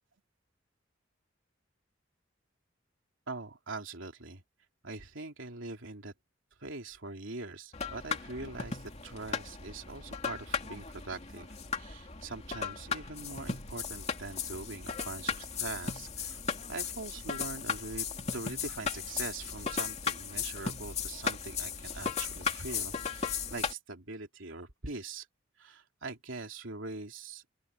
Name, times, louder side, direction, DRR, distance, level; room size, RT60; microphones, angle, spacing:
voice 1, 3.3-4.4 4.8-6.1 6.6-16.4 16.7-18.1 18.3-25.3 25.6-27.4, right 3 dB, 85° right, 3.1 m, -42 dB
sound 1, 7.7-23.7, left 6 dB, 35° left, 2.6 m, -36 dB
open air
head